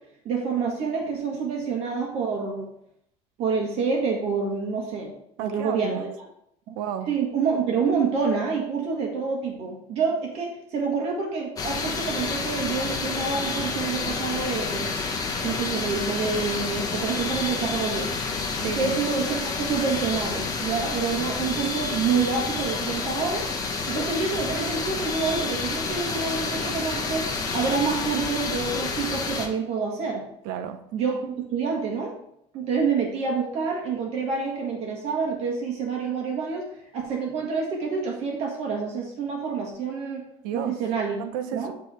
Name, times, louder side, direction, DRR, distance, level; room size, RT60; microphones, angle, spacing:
voice 1, 0.2-2.7 3.4-5.1 5.4-6.1 6.7-6.8 7.1-14.9 15.4-18.1 18.7-23.5 23.9-27.3 27.5-30.2 30.9-32.1 32.5-36.6 36.9-40.2 40.5-41.2 41.5-41.7, right 5 dB, 50° right, 0 dB, 1.4 m, -27 dB
voice 2, 5.4-6.1 6.7-7.1 18.6-19.1 30.4-30.8 40.4-40.8 41.2-41.7, right 9 dB, 80° right, 7 dB, 0.6 m, -32 dB
sound 1, 11.6-29.5, left 4 dB, 25° left, 0.8 m, -29 dB
8.3 x 3.2 x 4.2 m, 0.73 s
cardioid pair, 150°, 14 cm